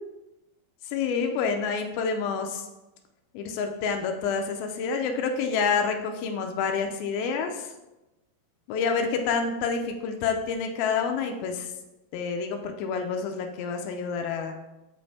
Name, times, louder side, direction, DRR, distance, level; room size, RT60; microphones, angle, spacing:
voice 1, 0.9-2.7 3.3-7.7 8.7-11.7 12.1-14.5, left 5 dB, 80° left, 4 dB, 2.3 m, -28 dB
7.8 x 5.3 x 4.1 m, 0.99 s
omnidirectional pair, 4.8 m